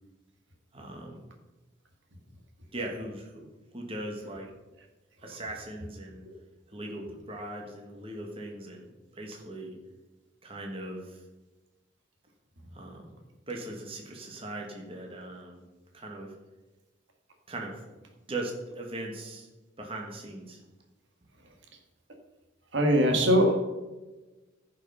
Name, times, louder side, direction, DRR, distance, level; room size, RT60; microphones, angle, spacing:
voice 1, 0.7-1.2 2.7-3.5 3.7-4.5 5.2-6.2 6.7-9.7 10.4-11.2 12.7-13.2 13.5-15.6 15.9-16.3 17.5-17.8 18.3-19.5 19.8-20.6, right 1 dB, 25° right, 0 dB, 1.6 m, -39 dB
voice 2, 22.7-23.6, equal, 65° right, 3 dB, 1.8 m, -21 dB
15.5 x 5.6 x 5.5 m, 1.1 s
head